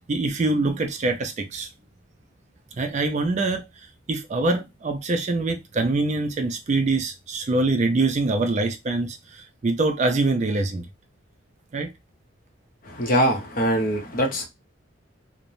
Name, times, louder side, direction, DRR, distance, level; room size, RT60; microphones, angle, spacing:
voice 1, 0.1-1.7 2.8-3.7 4.1-10.8 11.7-11.9, right 2 dB, 35° right, 0.4 m, -24 dB
voice 2, 12.8-14.5, equal, 45° left, 0.6 m, -23 dB
3.1 x 2.0 x 2.5 m
head